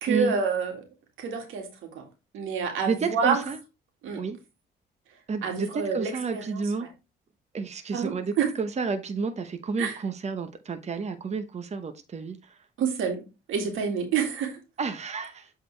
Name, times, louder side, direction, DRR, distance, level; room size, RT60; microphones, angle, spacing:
voice 1, 0.0-0.8 1.2-2.0 2.3-3.4 4.0-4.2 5.4-6.9 7.9-8.5 9.8-10.0 12.8-13.2 13.5-14.6, right 6 dB, 90° right, 2.1 m, -28 dB
voice 2, 2.8-3.6 4.2-4.4 5.3-6.9 7.5-12.6 14.8-15.5, right 4 dB, 35° right, 0.9 m, -30 dB
7.8 x 3.9 x 3.3 m
cardioid pair, 90°, 20 cm